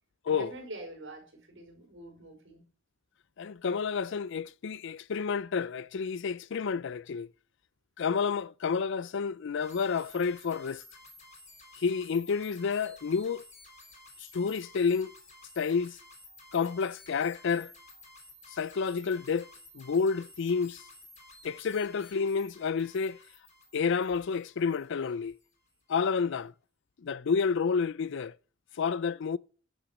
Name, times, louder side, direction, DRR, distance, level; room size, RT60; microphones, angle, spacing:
voice 1, 0.3-2.6, right 2 dB, 65° right, 5.1 m, -44 dB
voice 2, 3.4-7.3 8.0-10.8 11.7-13.4 14.3-15.1 15.6-16.0 16.5-17.7 18.5-19.5 19.7-20.8 21.4-23.2 23.7-25.4 25.9-26.5 27.0-28.4 28.8-29.4, left 5 dB, 65° left, 0.4 m, -30 dB
sound 1, 9.6-25.5, left 2 dB, 35° left, 3.6 m, -54 dB
10.5 x 7.1 x 6.0 m
head